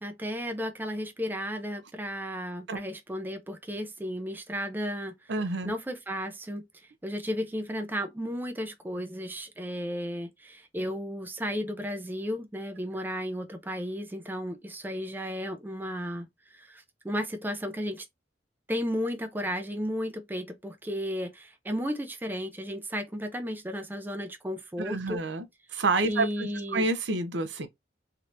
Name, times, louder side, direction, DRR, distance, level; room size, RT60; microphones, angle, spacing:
voice 1, 0.0-5.1 5.6-18.1 18.7-25.2 26.0-26.9, equal, 10° right, 0.4 m, -34 dB
voice 2, 5.3-5.7 24.8-25.5 25.7-27.7, right 3 dB, 75° right, 0.6 m, -28 dB
3.4 x 2.8 x 2.4 m
head